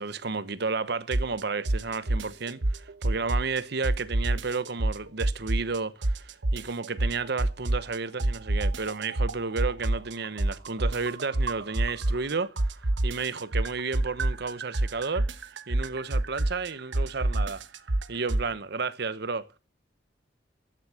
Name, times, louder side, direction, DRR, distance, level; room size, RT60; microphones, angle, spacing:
voice 1, 0.0-12.5 13.0-15.3 15.7-17.6 18.1-19.5, right 4 dB, 65° right, 1.0 m, -32 dB
sound 1, 1.1-1.4 1.7-3.6 3.8-5.8 6.0-7.9 8.2-12.3 12.6-18.5, right 1 dB, 85° right, 1.1 m, -27 dB
13.0 x 10.5 x 6.4 m
head